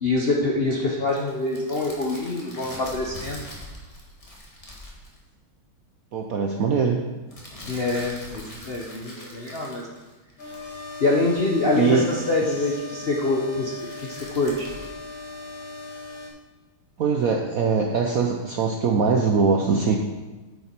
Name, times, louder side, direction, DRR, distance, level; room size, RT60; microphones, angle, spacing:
voice 1, 0.0-3.4 7.7-9.9 11.0-13.7 14.0-14.7, left 2 dB, 50° left, -2 dB, 0.7 m, -25 dB
sound 1, 1.1-5.2 7.3-10.5 13.5-14.9, left 1 dB, 20° left, 1.3 m, -42 dB
voice 2, 6.1-7.0 11.8-12.1 17.0-20.0, right 5 dB, 70° right, 2 dB, 0.8 m, -22 dB
sound 2, 10.4-16.3, left 3 dB, 75° left, 2.6 m, -38 dB
8.8 x 7.1 x 4.4 m, 1.2 s
omnidirectional pair, 2.2 m